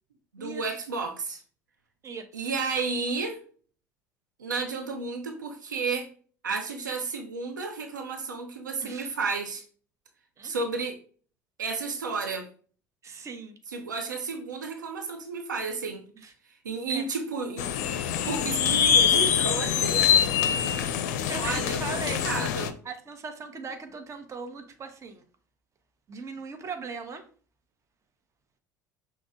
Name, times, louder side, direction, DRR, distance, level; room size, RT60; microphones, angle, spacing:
voice 1, 0.3-1.4 2.3-3.4 4.4-6.1 6.4-9.6 10.4-11.0 11.6-12.5 13.7-16.0 16.6-17.8 18.3-20.1 20.8-20.9 21.3-22.8, right 4 dB, 80° right, 3 dB, 0.7 m, -32 dB
voice 2, 2.0-2.5 8.8-9.1 10.4-10.5 13.0-13.5 16.2-16.3 16.9-17.0 21.3-22.3 22.8-25.2 26.1-27.2, right 4 dB, 30° right, 6 dB, 0.9 m, -39 dB
sound 1, 17.6-22.7, left 8 dB, 65° left, 0.5 m, -24 dB
6.0 x 2.1 x 3.7 m, 0.41 s
figure-of-eight pair, 65°, 10 cm